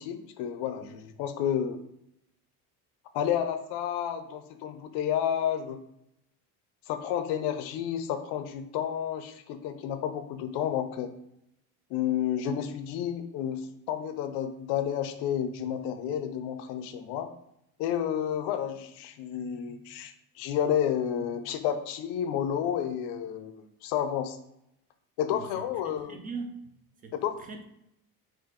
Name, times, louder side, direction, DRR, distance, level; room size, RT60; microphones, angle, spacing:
voice 1, 0.0-1.8 3.1-5.8 6.9-11.1 11.9-17.3 17.8-24.4 25.2-26.2 27.1-27.3, left 9 dB, 85° left, 8 dB, 0.6 m, -31 dB
voice 2, 25.8-26.5 27.0-27.1 27.5-27.6, right 4 dB, 25° right, 4 dB, 0.4 m, -39 dB
4.4 x 2.5 x 3.8 m, 0.80 s
cardioid pair, 165°, 38 cm